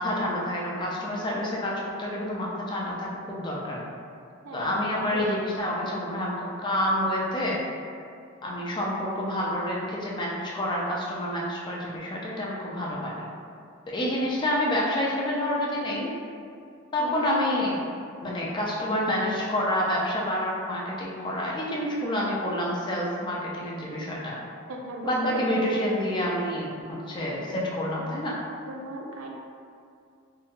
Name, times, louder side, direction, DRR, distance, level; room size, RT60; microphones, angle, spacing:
voice 1, 0.0-3.8 4.5-7.6 8.4-13.3 13.9-16.1 16.9-17.8 18.2-24.4 25.0-28.4, left 1 dB, 20° left, -4 dB, 0.4 m, -28 dB
voice 2, 4.4-4.8 5.1-5.2 17.0-17.2 24.7-25.8 28.7-29.3, right 1 dB, 80° right, 0 dB, 0.4 m, -36 dB
3.0 x 2.2 x 2.4 m, 2.3 s
head